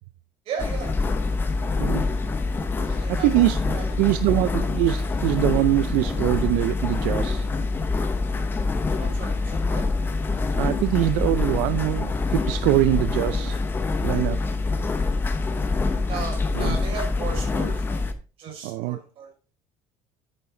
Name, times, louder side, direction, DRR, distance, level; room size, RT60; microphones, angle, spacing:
voice 1, 0.4-1.0 2.8-3.3 3.7-4.3 9.0-9.8 16.0-18.0 18.4-19.3, right 6 dB, 45° right, 4.5 m, -36 dB
sound 1, 0.6-18.1, left 3 dB, 15° left, 0.8 m, -25 dB
voice 2, 3.1-3.6 4.0-7.5 10.5-13.6 14.0-14.4 16.5-16.8 18.5-19.0, right 16 dB, 75° right, 0.5 m, -23 dB
9.3 x 7.0 x 3.8 m
cardioid pair, 180°, 14 cm